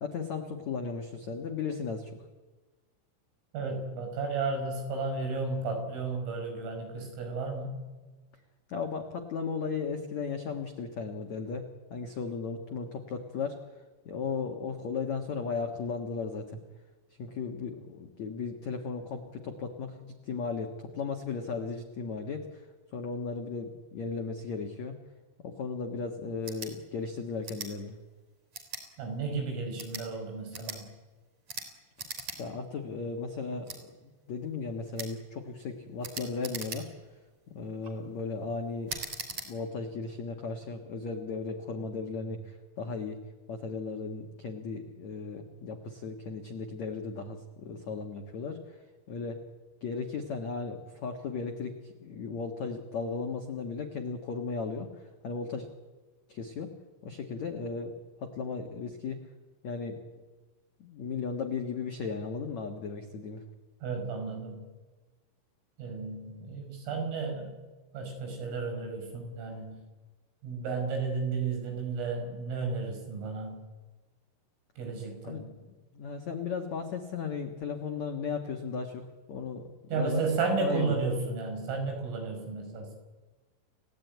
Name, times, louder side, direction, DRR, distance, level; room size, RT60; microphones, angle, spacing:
voice 1, 0.0-2.1 8.7-11.6 11.9-13.6 14.0-16.6 17.2-22.7 22.9-25.0 25.4-28.0 32.4-36.9 37.5-39.0 39.4-43.2 43.5-48.8 49.1-49.4 49.8-55.7 56.3-56.7 57.0-59.2 59.6-60.0 60.8-63.4 75.2-75.4 75.9-80.2 80.6-81.0, left 5 dB, 85° left, 4 dB, 1.5 m, -36 dB
voice 2, 3.5-7.8 29.0-30.9 63.8-64.7 65.8-67.6 67.9-69.8 70.4-73.6 74.8-75.5 79.9-82.9, right 4 dB, 75° right, 4 dB, 7.8 m, -33 dB
sound 1, 26.4-26.7 27.4-27.7 28.5-28.8 29.6-30.1 30.5-30.8 31.5-31.7 32.0-32.4 32.7-32.8 33.6-33.8 34.9-35.1 36.0-37.1 37.6-37.9 38.9-39.5, right 4 dB, 35° right, 4.5 m, -40 dB
29.5 x 17.5 x 9.4 m, 1.3 s
omnidirectional pair, 5.9 m